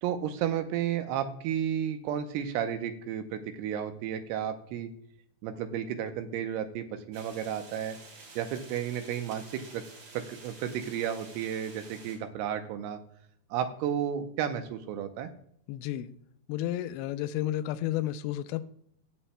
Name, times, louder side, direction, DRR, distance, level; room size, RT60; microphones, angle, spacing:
voice 1, 0.0-4.9 5.4-8.0 8.4-9.8 10.1-13.0 13.5-15.3, right 9 dB, 85° right, 7 dB, 2.7 m, -32 dB
sound 1, 7.1-12.2, right 3 dB, 60° right, 4.6 m, -50 dB
voice 2, 15.7-16.1 16.5-18.6, left 13 dB, 85° left, 11 dB, 2.3 m, -32 dB
16.5 x 7.1 x 2.2 m, 0.66 s
omnidirectional pair, 4.8 m